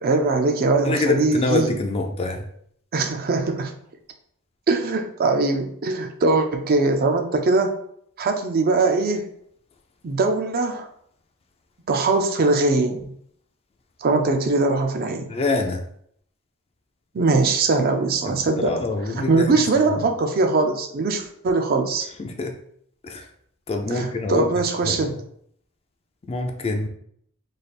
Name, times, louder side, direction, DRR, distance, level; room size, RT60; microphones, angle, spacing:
voice 1, 0.0-1.7 2.9-3.7 4.7-7.8 8.2-9.3 10.0-10.9 11.9-13.1 14.0-15.3 17.1-18.8 19.3-22.1 23.9-25.2, right 3 dB, 45° right, 5 dB, 0.4 m, -21 dB
voice 2, 0.8-2.5 15.3-15.8 18.3-19.5 22.2-22.6 23.0-23.3 23.7-24.5 24.8-25.2 26.3-26.9, left 3 dB, 25° left, 4 dB, 0.4 m, -25 dB
3.3 x 2.4 x 4.1 m, 0.68 s
head